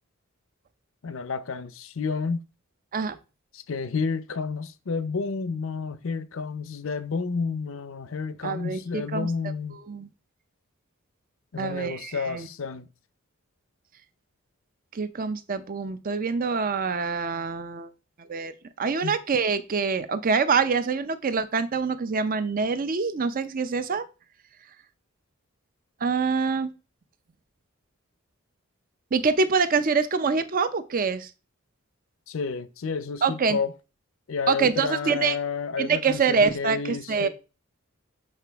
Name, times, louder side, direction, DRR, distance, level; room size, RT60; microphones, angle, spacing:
voice 1, 1.0-2.4 3.5-9.8 11.5-12.9 19.0-19.1 32.3-33.7 34.3-37.3, left 5 dB, 65° left, 0.6 m, -30 dB
voice 2, 8.4-9.3 9.7-10.1 11.6-12.5 14.9-17.9 18.2-18.5 18.8-24.0 26.0-26.7 29.1-31.3 33.2-33.6 34.5-35.3 35.8-37.3, right 5 dB, 40° right, 0.5 m, -25 dB
6.5 x 5.8 x 3.5 m
head